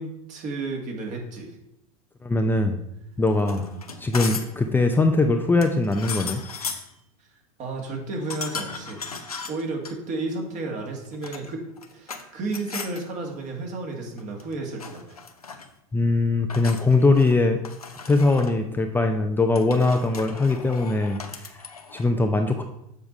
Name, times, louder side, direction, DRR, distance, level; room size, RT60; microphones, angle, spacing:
voice 1, 0.0-1.6 3.6-3.8 7.6-9.0 9.5-11.6 11.9-15.2, right 3 dB, 40° right, 1 dB, 2.0 m, -32 dB
voice 2, 2.2-2.8 3.2-3.7 4.0-6.4 15.9-17.6 18.0-21.6 21.9-22.6, left 3 dB, 10° left, 5 dB, 0.5 m, -21 dB
sound 1, 3.4-4.6 5.6-6.9 8.3-9.9 11.0-12.2 12.5-13.0 14.2-14.5 14.8-15.7 16.5-17.4 17.6-18.6 19.5-22.1, left 5 dB, 90° left, 0.7 m, -36 dB
7.1 x 4.8 x 5.3 m, 0.81 s
figure-of-eight pair, 80°, 18 cm